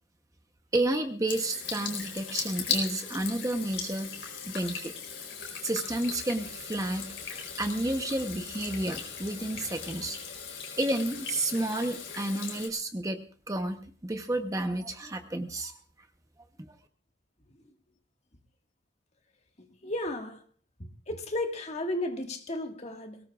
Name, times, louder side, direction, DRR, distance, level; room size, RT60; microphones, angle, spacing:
voice 1, 0.7-4.1 4.5-4.9 5.6-10.2 10.8-15.7 16.7-16.8, right 1 dB, 15° right, 0.8 m, -31 dB
Water tap faucet / Sink (filling or washing), 1.3-12.7, left 6 dB, 60° left, 4.3 m, -38 dB
voice 2, 19.8-20.4 21.1-23.2, left 1 dB, 35° left, 1.7 m, -33 dB
22.0 x 18.0 x 2.4 m
head